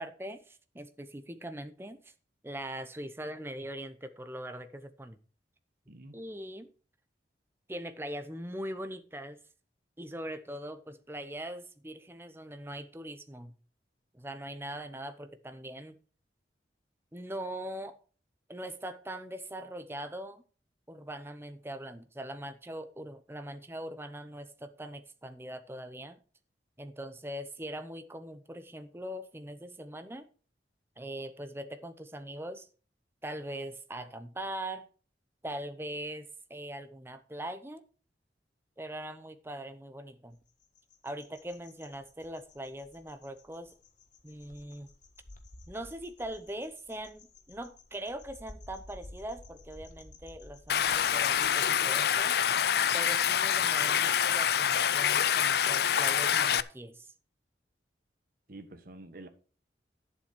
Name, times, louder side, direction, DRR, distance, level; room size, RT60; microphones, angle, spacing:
voice 1, 0.0-2.1 2.4-5.2 6.1-6.7 7.7-9.4 10.0-13.5 14.1-16.0 17.1-18.0 18.5-20.4 20.9-26.2 26.8-30.3 31.0-32.7 33.2-34.9 35.4-37.8 38.8-40.4 41.0-43.7 44.2-44.9 45.7-52.4 52.9-57.1, right 1 dB, 15° right, 0.8 m, -41 dB
voice 2, 5.9-6.2 58.5-59.3, right 2 dB, 50° right, 1.5 m, -47 dB
sound 1, 40.4-51.5, left 2 dB, 45° left, 1.4 m, -54 dB
Stream, 50.7-56.6, left 9 dB, 60° left, 0.4 m, -26 dB
11.5 x 7.4 x 4.6 m
head